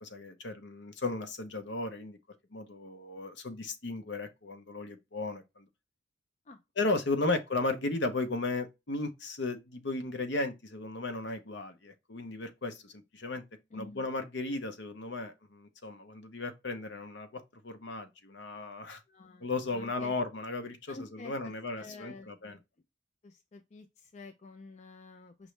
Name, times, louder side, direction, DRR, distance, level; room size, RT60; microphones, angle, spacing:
voice 1, 0.0-2.2 2.5-5.7 6.8-13.4 13.7-19.0 19.4-22.6, left 2 dB, 60° left, 0.8 m, -35 dB
voice 2, 13.7-14.0 19.1-19.5 19.7-20.1 20.9-22.6 23.2-25.5, left 3 dB, 35° left, 0.4 m, -49 dB
5.2 x 3.0 x 3.2 m
head